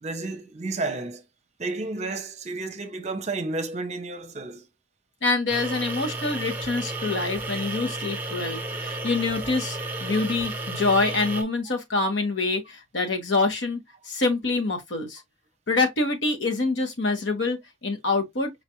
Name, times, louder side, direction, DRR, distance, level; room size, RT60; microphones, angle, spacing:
voice 1, 0.0-1.2 1.6-4.6 5.9-6.0, right 3 dB, 35° right, 0.7 m, -31 dB
voice 2, 5.2-13.8 14.0-15.2 15.7-18.5, left 3 dB, 75° left, 1.3 m, -26 dB
sound 1, 5.5-11.4, right 2 dB, 10° right, 1.0 m, -32 dB
4.9 x 2.5 x 3.0 m
head